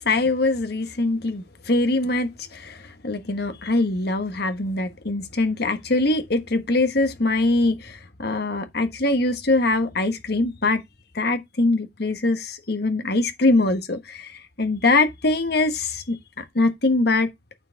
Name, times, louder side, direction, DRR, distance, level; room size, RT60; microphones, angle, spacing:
voice 1, 0.0-10.8 11.1-17.3, left 2 dB, 65° left, 1.3 m, -23 dB
8.7 x 4.7 x 4.6 m
head